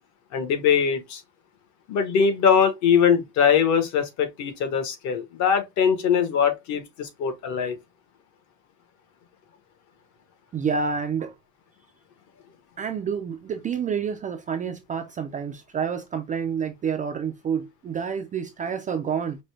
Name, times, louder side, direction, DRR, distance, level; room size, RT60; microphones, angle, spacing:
voice 1, 0.3-1.2 1.9-7.8, left 7 dB, 50° left, 1.1 m, -22 dB
voice 2, 10.5-11.3 12.8-19.4, right 6 dB, 25° right, 0.3 m, -28 dB
5.1 x 2.1 x 3.2 m
cardioid pair, 160°, 36 cm